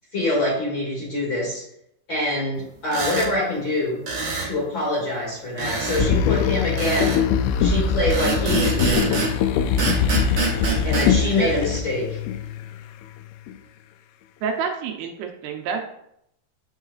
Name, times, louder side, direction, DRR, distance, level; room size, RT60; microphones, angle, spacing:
voice 1, 0.1-1.6 2.1-4.0 4.4-7.2 7.6-9.3 10.8-12.2, left 1 dB, 35° left, -7 dB, 2.3 m, -25 dB
sound 1, 2.9-3.3 4.1-4.5 5.6-6.1 6.8-7.2 8.1-9.4 9.8-11.1, right 3 dB, 50° right, 1.6 m, -25 dB
sound 2, 6.0-12.9 13.5-13.6, left 7 dB, 85° left, 2.5 m, -22 dB
voice 2, 14.4-16.0, right 6 dB, 80° right, 3 dB, 2.5 m, -28 dB
7.9 x 5.6 x 2.4 m, 0.75 s
omnidirectional pair, 4.5 m